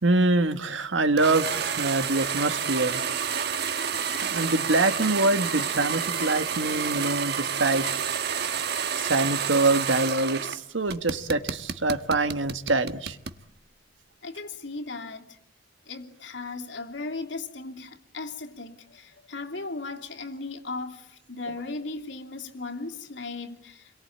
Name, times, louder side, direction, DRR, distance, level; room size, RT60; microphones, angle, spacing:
voice 1, 0.0-3.0 4.2-7.9 8.9-13.2, right 2 dB, 90° right, 1.6 m, -25 dB
sound 1, 1.2-10.6 10.9-13.4, right 7 dB, 60° right, 1.4 m, -29 dB
voice 2, 14.2-15.4 15.9-23.9, left 3 dB, 70° left, 2.8 m, -37 dB
29.0 x 23.0 x 8.7 m
head